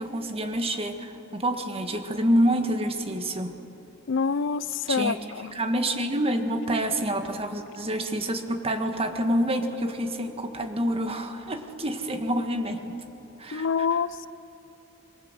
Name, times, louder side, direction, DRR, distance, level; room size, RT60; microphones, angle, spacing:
voice 1, 0.0-3.5 4.9-12.9 13.4-14.0, right 1 dB, 30° right, 6 dB, 1.7 m, -27 dB
voice 2, 4.1-5.1 13.5-14.3, left 5 dB, 60° left, 17 dB, 0.5 m, -26 dB
25.0 x 22.5 x 7.5 m, 3.0 s
head